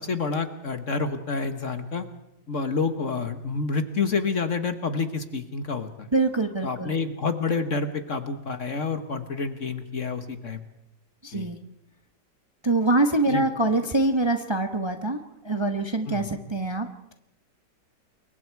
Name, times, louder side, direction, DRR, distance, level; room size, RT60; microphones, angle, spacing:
voice 1, 0.0-2.1 2.5-6.1 6.6-10.6 11.3-11.5 13.3-13.4 16.1-16.3, left 4 dB, 45° left, 9 dB, 1.5 m, -28 dB
voice 2, 6.1-6.9 11.2-11.6 12.6-17.1, right 2 dB, 20° right, 6 dB, 1.1 m, -25 dB
28.5 x 23.0 x 4.7 m, 0.81 s
omnidirectional pair, 1.9 m